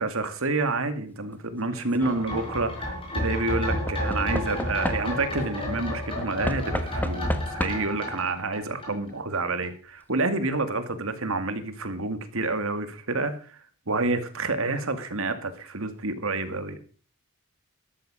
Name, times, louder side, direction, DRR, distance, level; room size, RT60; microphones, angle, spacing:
voice 1, 0.0-13.6 13.9-16.8, right 3 dB, 65° right, 9 dB, 2.2 m, -29 dB
Knock / Wood, 1.7-2.2 3.9-5.4 6.5-8.0 9.1-9.2 9.4-9.5, equal, 10° left, 1.2 m, -32 dB
sound 1, 2.0-9.4 9.6-9.7, left 1 dB, 25° left, 5.1 m, -31 dB
13.0 x 12.5 x 5.2 m, 0.38 s
head